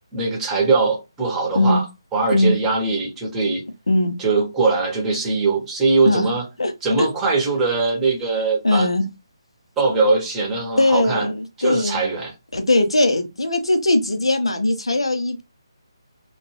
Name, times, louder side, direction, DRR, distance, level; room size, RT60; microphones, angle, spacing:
voice 1, 0.1-1.8 2.1-3.6 4.2-6.5 6.8-8.9 9.8-11.3 11.6-12.3, right 3 dB, 10° right, 0.8 m, -21 dB
voice 2, 3.9-4.2 6.1-6.2 6.6-6.7 7.0-7.1 8.6-9.0 10.8-12.0 12.5-15.4, left 2 dB, 85° left, 0.6 m, -19 dB
2.2 x 2.2 x 3.1 m
figure-of-eight pair, 155°, 3 cm